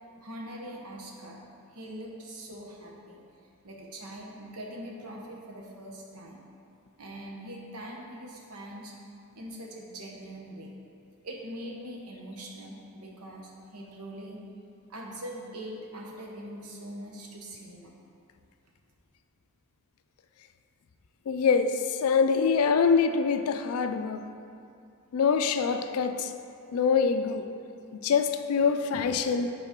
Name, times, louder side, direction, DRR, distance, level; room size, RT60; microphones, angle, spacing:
voice 1, 0.2-1.4 1.7-3.2 3.6-6.4 7.0-8.9 9.3-10.7 11.2-14.4 14.9-17.9, right 1 dB, 85° right, -1 dB, 1.0 m, -42 dB
voice 2, 21.3-24.3 25.1-26.3 26.7-27.5 27.9-29.5, left 5 dB, 70° left, 9 dB, 0.4 m, -25 dB
8.1 x 4.0 x 3.7 m, 2.5 s
head